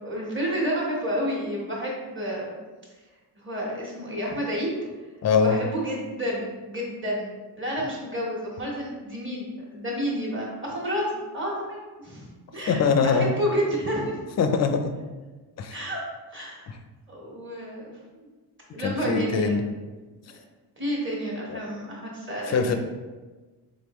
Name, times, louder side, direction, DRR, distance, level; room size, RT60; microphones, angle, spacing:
voice 1, 0.0-2.6 3.4-4.8 5.4-11.0 11.3-14.2 15.7-16.0 16.3-16.6 17.1-18.3 18.7-19.6 20.3-20.4 20.8-22.8, equal, 30° right, -4 dB, 1.3 m, -30 dB
voice 2, 5.2-5.6 12.7-13.3 14.4-14.9 15.6-15.8 16.7-16.8 18.8-19.6 21.5-21.6 22.5-22.8, left 5 dB, 40° left, 7 dB, 0.4 m, -22 dB
3.7 x 3.6 x 3.0 m, 1.3 s
cardioid pair, 120°, 42 cm